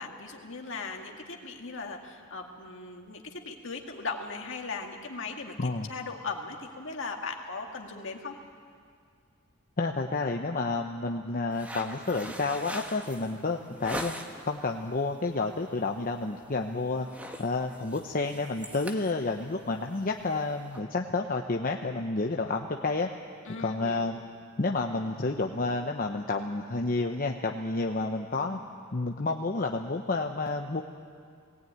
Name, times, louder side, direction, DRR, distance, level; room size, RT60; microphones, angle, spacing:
voice 1, 0.0-8.4 23.4-24.1, left 4 dB, 60° left, 2 dB, 2.1 m, -38 dB
voice 2, 9.8-14.1 14.4-17.1 17.4-23.1 23.6-24.2 24.6-28.6 28.9-30.8, left 3 dB, 40° left, 3 dB, 0.8 m, -30 dB
sound 1, 11.5-14.5 15.0-15.3 15.7-15.9 16.2-16.6 16.9-20.8, equal, 5° right, 1.2 m, -41 dB
18.5 x 18.5 x 9.4 m, 2.2 s
head